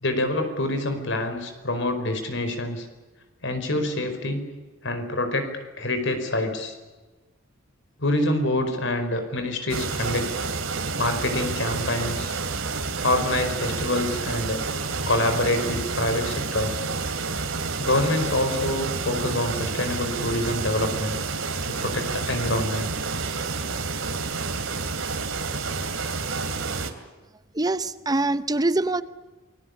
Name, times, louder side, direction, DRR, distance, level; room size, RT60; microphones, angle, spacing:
voice 1, 0.0-2.9 3.4-4.5 4.8-6.8 8.0-10.3 11.0-12.3 13.0-14.6 15.1-16.8 17.8-21.1 21.7-22.9, left 1 dB, 65° left, 7 dB, 4.9 m, -26 dB
sound 1, 9.7-26.9, right 4 dB, 80° right, 2.8 m, -29 dB
voice 2, 27.6-29.0, right 2 dB, 20° right, 13 dB, 0.8 m, -24 dB
28.0 x 21.0 x 8.4 m, 1.2 s
head